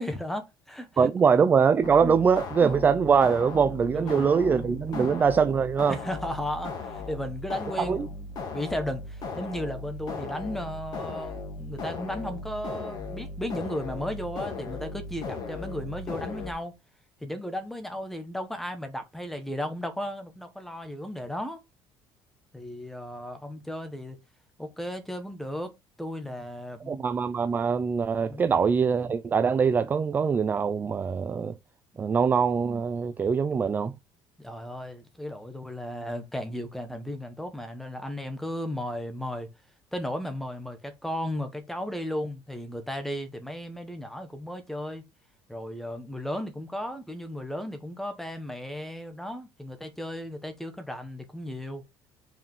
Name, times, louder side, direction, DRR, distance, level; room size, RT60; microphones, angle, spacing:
voice 1, 0.0-1.1 2.0-2.2 2.6-2.8 3.9-4.3 4.9-5.2 5.9-16.7 17.2-21.6 22.5-24.2 24.6-25.7 26.0-27.0 28.3-28.5 31.9-32.1 34.4-39.5 39.9-45.0 45.5-51.8, left 1 dB, 5° left, 1.2 m, -35 dB
voice 2, 1.0-6.0 7.8-8.1 26.9-31.5 32.0-33.9, right 6 dB, 20° right, 0.4 m, -23 dB
sound 1, 1.8-16.5, left 3 dB, 40° left, 2.3 m, -37 dB
5.4 x 5.0 x 5.4 m
cardioid pair, 170°, 10 cm